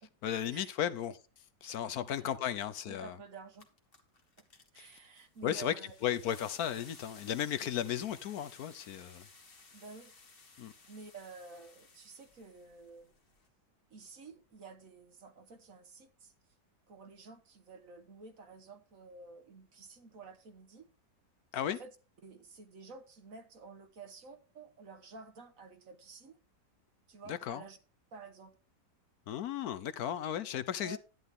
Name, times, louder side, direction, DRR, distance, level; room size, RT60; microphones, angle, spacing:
voice 1, 0.2-1.2 1.6-3.2 4.8-4.9 5.4-5.7 6.0-9.2 10.6-10.7 21.5-21.8 27.3-27.6 29.3-31.0, left 10 dB, 70° left, 1.1 m, -35 dB
voice 2, 2.9-3.7 4.7-5.9 9.7-10.2 10.9-13.1 13.9-16.3 16.9-20.9 21.6-21.9 22.2-26.4 27.1-27.8 28.1-28.5 30.8-31.0, right 4 dB, 55° right, 1.5 m, -51 dB
sound 1, 3.0-3.1 3.4-13.5, left 4 dB, 35° left, 1.6 m, -58 dB
11.0 x 10.0 x 3.6 m
omnidirectional pair, 1.8 m